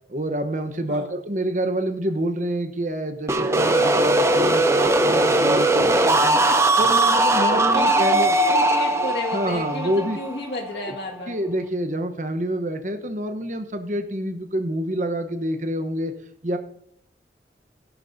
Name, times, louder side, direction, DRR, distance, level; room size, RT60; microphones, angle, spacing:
voice 1, 0.1-6.4 6.8-8.3 9.3-10.2 10.7-10.9 11.3-16.1 16.4-16.6, right 1 dB, 45° right, 7 dB, 1.0 m, -27 dB
voice 2, 0.9-1.2 6.3-6.7 7.7-11.4, left 1 dB, 70° left, -1 dB, 1.9 m, -32 dB
sound 1, 3.3-11.0, right 2 dB, 15° right, 0.5 m, -19 dB
17.0 x 11.0 x 2.7 m, 0.68 s
head